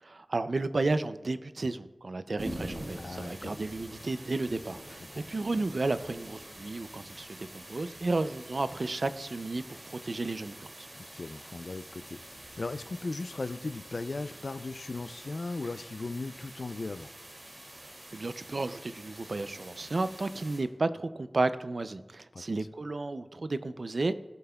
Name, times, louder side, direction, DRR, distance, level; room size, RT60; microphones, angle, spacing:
voice 1, 0.0-10.9 18.1-24.1, right 2 dB, 70° right, 12 dB, 0.4 m, -33 dB
sound 1, 2.4-20.6, right 1 dB, 50° right, 2.4 m, -46 dB
voice 2, 3.0-3.6 5.0-5.2 10.9-17.1 22.3-22.4, left 3 dB, 75° left, 13 dB, 0.3 m, -38 dB
16.5 x 5.6 x 2.3 m, 1.2 s
wide cardioid pair, 70°, 0 cm